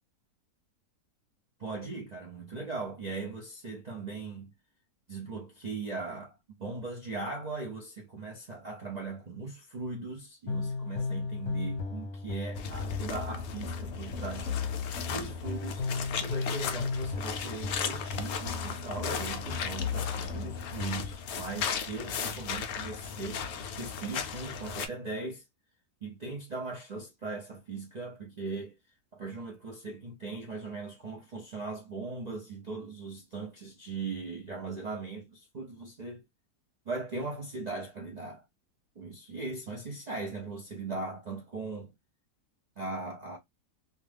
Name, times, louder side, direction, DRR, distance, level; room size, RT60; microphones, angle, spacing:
voice 1, 1.6-4.5 5.1-14.6 15.1-15.8 16.2-23.5 23.8-25.4 26.0-28.7 29.1-36.2 36.9-38.4 39.0-41.9 42.8-43.4, right 3 dB, 65° right, 0.4 m, -39 dB
sound 1, 10.5-21.1, left 4 dB, 55° left, 1.0 m, -35 dB
sound 2, 12.6-24.9, left 6 dB, 75° left, 0.6 m, -36 dB
2.8 x 2.3 x 3.2 m
omnidirectional pair, 1.8 m